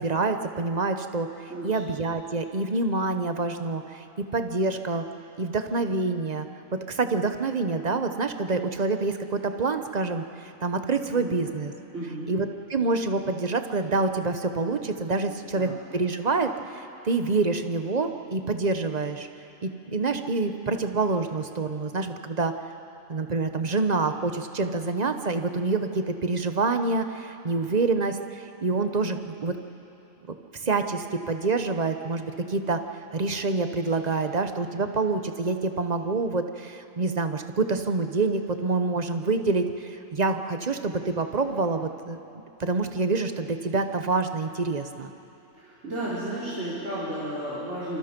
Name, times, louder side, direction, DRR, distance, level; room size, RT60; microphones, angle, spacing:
voice 1, 0.0-4.0 4.3-5.0 5.4-6.5 6.9-11.7 12.3-19.3 19.6-22.5 23.1-29.6 30.5-32.8 33.1-42.2 42.6-45.1, right 3 dB, 35° right, 7 dB, 0.9 m, -27 dB
voice 2, 11.9-12.3 15.5-15.7 45.6-48.0, right 1 dB, 60° right, -10 dB, 4.2 m, -33 dB
26.0 x 25.0 x 5.2 m, 2.9 s
omnidirectional pair, 1.4 m